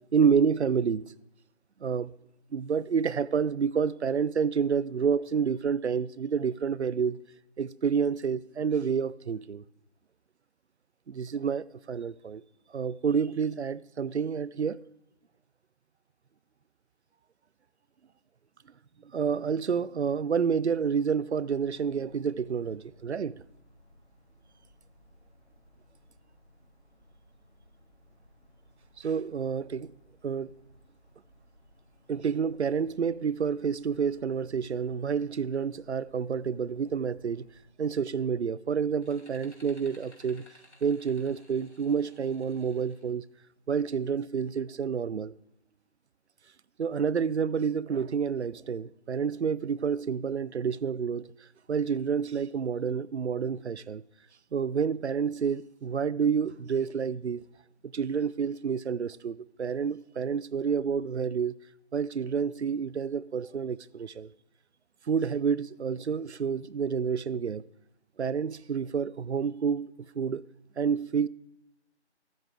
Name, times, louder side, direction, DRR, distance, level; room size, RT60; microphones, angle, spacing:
voice 1, 0.1-1.0 1.8-2.1 2.5-7.2 7.6-9.6 11.1-12.4 12.7-14.8 19.1-23.4 29.0-29.9 30.2-30.5 32.1-37.5 37.8-40.4 40.8-43.2 43.7-45.3 46.8-51.3 51.7-54.0 54.5-57.4 57.9-61.5 61.9-64.3 65.1-67.7 68.2-69.9 70.2-70.4 70.8-71.3, right 6 dB, 70° right, 0.5 m, -29 dB
sound 1, 21.2-37.7, equal, 40° left, 4.1 m, -61 dB
sound 2, 39.0-43.1, left 1 dB, 75° left, 2.5 m, -58 dB
13.0 x 7.5 x 4.7 m
figure-of-eight pair, 165°, 35 cm